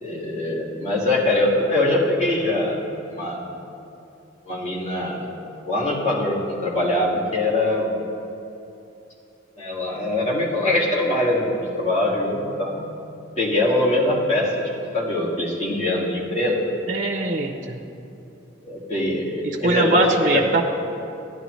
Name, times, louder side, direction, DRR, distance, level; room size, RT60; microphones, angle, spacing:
voice 1, 0.0-2.8 3.1-3.4 4.5-5.3 5.7-7.9 9.6-12.9 13.4-14.6 14.9-16.7 18.6-20.4, left 1 dB, 35° left, -5 dB, 1.8 m, -23 dB
voice 2, 16.9-17.8 19.4-20.6, right 2 dB, 40° right, 3 dB, 0.6 m, -21 dB
13.5 x 10.5 x 3.1 m, 2.7 s
head